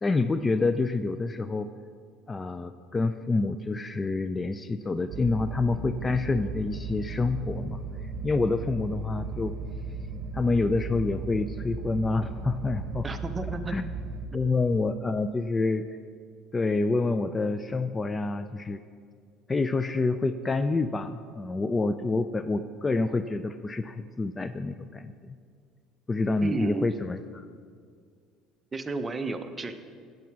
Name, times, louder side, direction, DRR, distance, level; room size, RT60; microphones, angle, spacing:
voice 1, 0.0-1.7 2.3-7.8 8.2-9.5 10.3-13.1 13.7-13.9 14.3-15.8 16.5-18.8 19.5-25.4 26.1-27.4, left 3 dB, 20° left, 11 dB, 0.3 m, -27 dB
sound 1, 5.1-14.3, right 4 dB, 60° right, 0.9 m, -36 dB
voice 2, 13.0-13.8 26.4-26.9 28.7-29.7, right 3 dB, 20° right, 8 dB, 0.7 m, -32 dB
9.1 x 7.3 x 6.0 m, 2.1 s
cardioid pair, 115°, 0 cm